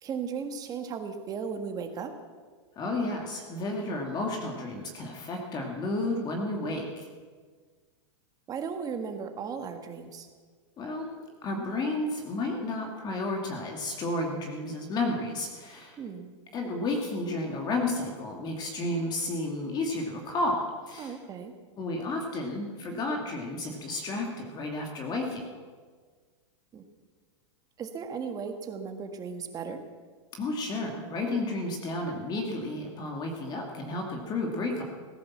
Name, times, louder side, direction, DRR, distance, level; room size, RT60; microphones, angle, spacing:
voice 1, 0.0-2.2 8.5-10.3 16.0-16.3 21.0-21.5 26.7-26.8 27.8-29.8, right 6 dB, 25° right, 6 dB, 1.6 m, -36 dB
voice 2, 2.8-7.1 10.8-11.1 11.4-16.0 16.5-21.2 21.8-25.4 30.4-34.8, left 2 dB, 25° left, 2 dB, 2.3 m, -32 dB
17.5 x 10.5 x 7.3 m, 1.5 s
supercardioid pair, 140°, 15 cm